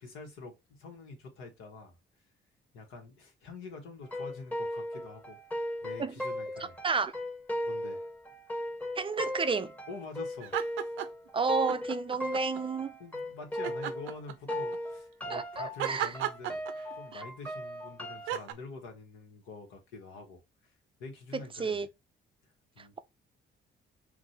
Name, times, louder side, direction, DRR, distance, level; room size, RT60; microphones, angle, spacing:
voice 1, 0.0-1.9 2.7-5.4 5.8-6.8 7.6-8.0 9.9-10.6 13.0-16.6 16.9-20.4 21.0-21.8 22.7-22.9, left 3 dB, 90° left, 1.4 m, -46 dB
sound 1, 4.0-14.2 14.5-18.3, left 1 dB, 10° left, 1.0 m, -37 dB
voice 2, 9.0-9.7 11.3-12.9 15.3-16.1 17.1-17.2 21.3-21.9 22.8-23.0, right 4 dB, 25° right, 0.4 m, -31 dB
sound 2, 10.4-11.3 11.7-12.6 13.6-14.8 15.8-17.2 18.3-18.5, right 12 dB, 90° right, 0.5 m, -35 dB
6.1 x 2.6 x 2.7 m
cardioid pair, 90°, 20 cm